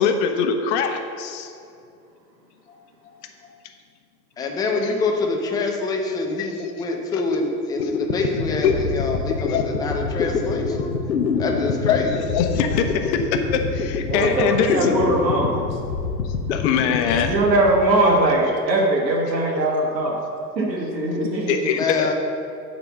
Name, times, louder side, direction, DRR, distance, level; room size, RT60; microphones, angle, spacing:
voice 1, 0.0-1.5 6.6-6.7 7.8-8.0 8.6-8.7 9.5-9.7 11.9-15.0 16.5-17.4 21.2-22.1, left 7 dB, 45° left, 5 dB, 0.9 m, -23 dB
voice 2, 4.4-12.1 21.7-22.1, left 3 dB, 10° left, 1 dB, 0.4 m, -26 dB
sound 1, 7.8-18.3, left 5 dB, 85° left, 0.8 m, -26 dB
voice 3, 14.1-15.6 17.2-20.2 20.5-21.7, right 2 dB, 80° right, 0 dB, 1.7 m, -21 dB
8.7 x 4.0 x 6.0 m, 2.5 s
hypercardioid pair, 105°, 50 cm